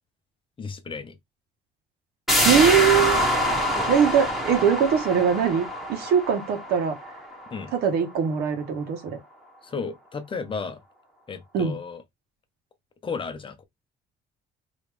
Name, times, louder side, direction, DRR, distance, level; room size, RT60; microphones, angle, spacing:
voice 1, 0.6-1.2 3.8-3.9 7.5-7.7 9.6-10.8 11.3-12.0 13.0-13.6, left 5 dB, 30° left, 0.8 m, -33 dB
sound 1, 2.3-7.8 8.1-8.2, left 1 dB, ahead, 1.7 m, -25 dB
voice 2, 2.4-3.2 3.9-7.0 7.7-9.0 11.5-11.8, right 7 dB, 70° right, 1.4 m, -21 dB
3.4 x 3.1 x 3.3 m
cardioid pair, 110°, 17 cm